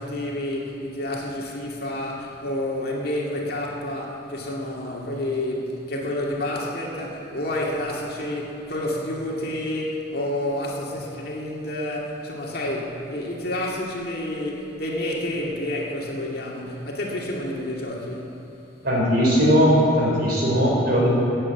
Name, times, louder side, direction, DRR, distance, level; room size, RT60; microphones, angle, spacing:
voice 1, 0.0-18.3, left 1 dB, 55° left, -2 dB, 2.2 m, -29 dB
voice 2, 18.8-21.1, equal, 55° right, -3 dB, 3.9 m, -19 dB
14.5 x 7.8 x 9.1 m, 2.9 s
head